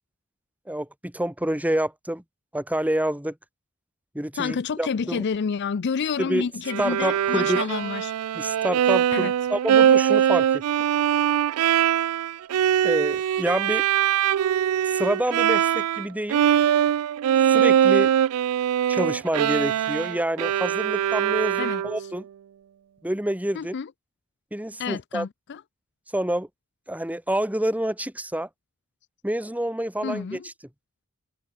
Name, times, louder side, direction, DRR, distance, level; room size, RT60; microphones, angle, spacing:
voice 1, 0.7-2.2 2.5-3.4 4.1-5.2 6.2-6.5 6.8-7.6 8.3-10.6 12.8-13.9 14.8-16.4 17.4-18.1 18.9-22.3 23.0-23.8 24.5-25.3 26.1-26.5 26.9-28.5 29.2-30.5, right 1 dB, 5° right, 1.6 m, -27 dB
voice 2, 4.4-8.1 9.1-9.3 21.6-21.8 23.5-23.9 24.8-25.6 30.0-30.5, left 6 dB, 55° left, 0.4 m, -29 dB
Bowed string instrument, 6.7-16.0 16.3-22.1, right 10 dB, 85° right, 0.3 m, -22 dB
head